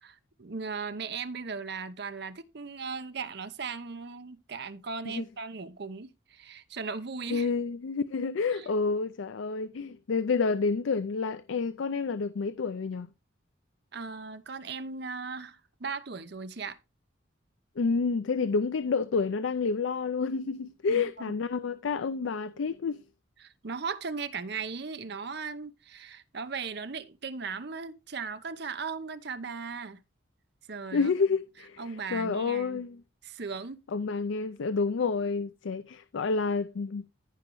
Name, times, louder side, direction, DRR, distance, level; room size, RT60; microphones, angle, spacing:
voice 1, 0.0-7.5 8.5-8.7 13.9-16.8 20.9-21.3 23.4-30.0 30.7-31.1 31.8-32.8 33.2-33.8, right 5 dB, 60° right, 0.8 m, -37 dB
voice 2, 7.3-13.1 17.8-23.0 30.9-31.8 32.1-33.0 33.9-37.0, left 4 dB, 80° left, 0.4 m, -29 dB
14.5 x 5.1 x 3.1 m
head